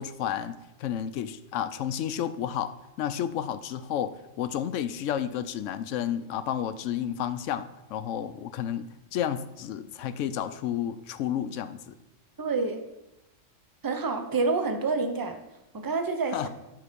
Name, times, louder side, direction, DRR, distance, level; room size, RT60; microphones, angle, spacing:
voice 1, 0.0-12.0 16.3-16.5, left 9 dB, 75° left, 12 dB, 0.9 m, -31 dB
voice 2, 12.4-12.8 13.8-15.4 15.8-16.4, right 4 dB, 25° right, 6 dB, 0.5 m, -27 dB
11.0 x 3.9 x 5.1 m, 0.93 s
omnidirectional pair, 1.3 m